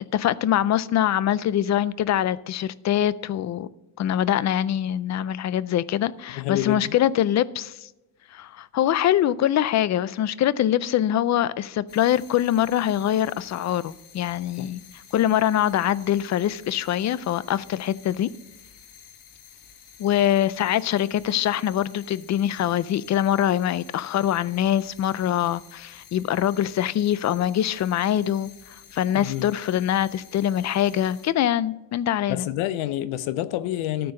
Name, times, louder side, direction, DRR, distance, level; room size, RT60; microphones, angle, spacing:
voice 1, 0.1-3.7 4.0-7.9 8.3-14.8 15.1-18.3 20.0-32.5, left 11 dB, 40° left, 0.4 m, -24 dB
voice 2, 6.3-6.9 14.6-14.7 29.2-29.5 32.3-34.1, left 14 dB, 90° left, 0.7 m, -28 dB
sound 1, 11.9-31.3, left 7 dB, 60° left, 1.6 m, -50 dB
13.5 x 4.6 x 6.3 m
cardioid pair, 120°, 46 cm